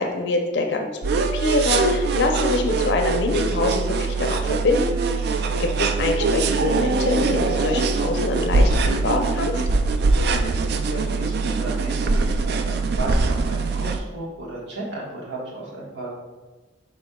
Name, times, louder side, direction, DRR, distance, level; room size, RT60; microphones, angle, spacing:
voice 1, 0.0-5.0 5.3-9.5, left 3 dB, 65° left, 3 dB, 0.5 m, -25 dB
sound 1, 1.0-14.0, right 3 dB, 60° right, 0.3 m, -22 dB
voice 2, 5.4-5.7 10.0-16.1, right 2 dB, 85° right, -4 dB, 1.4 m, -35 dB
5.2 x 4.3 x 2.2 m, 1.2 s
head